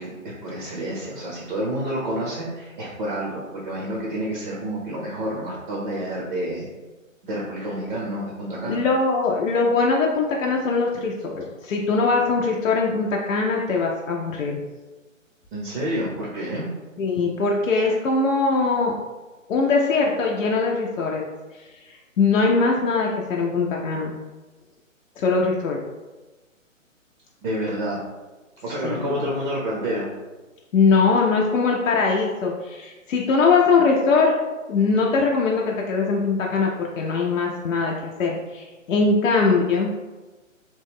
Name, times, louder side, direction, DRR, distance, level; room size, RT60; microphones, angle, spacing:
voice 1, 0.0-6.7 7.2-8.9 15.5-16.7 27.4-28.0 28.6-30.1, right 1 dB, 40° right, -3 dB, 0.6 m, -29 dB
voice 2, 8.7-14.6 17.0-18.9 19.5-21.2 21.6-24.1 25.2-25.8 28.8-29.2 30.7-34.3 34.7-39.9, left 4 dB, 75° left, -1 dB, 0.6 m, -21 dB
3.0 x 2.1 x 3.4 m, 1.2 s
hypercardioid pair, 145°, 40 cm